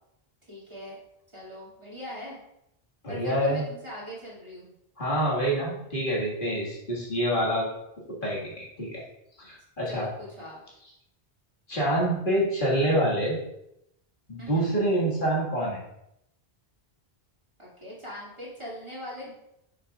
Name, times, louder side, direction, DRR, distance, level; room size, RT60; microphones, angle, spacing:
voice 1, 0.5-1.0 1.3-2.4 3.1-4.7 9.9-10.6 14.4-14.7 17.6-19.3, equal, 30° right, -7 dB, 2.4 m, -41 dB
voice 2, 3.0-3.6 5.0-7.7 8.2-9.0 9.4-10.1 11.7-13.4 14.3-15.8, right 1 dB, 55° left, -5 dB, 2.0 m, -26 dB
9.4 x 6.6 x 2.4 m, 0.81 s
omnidirectional pair, 1.0 m